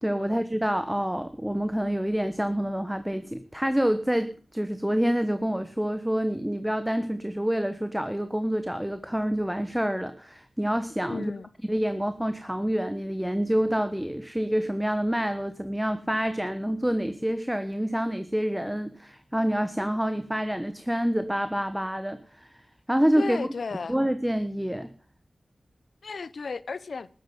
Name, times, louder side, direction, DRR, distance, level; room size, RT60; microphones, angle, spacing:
voice 1, 0.0-11.3 11.7-22.2 22.9-23.5 23.9-24.9, equal, 5° right, 1.1 m, -27 dB
voice 2, 11.1-11.5 23.2-24.0 26.0-27.1, left 4 dB, 75° left, 0.7 m, -34 dB
14.0 x 12.0 x 5.3 m
wide cardioid pair, 65°, 0 cm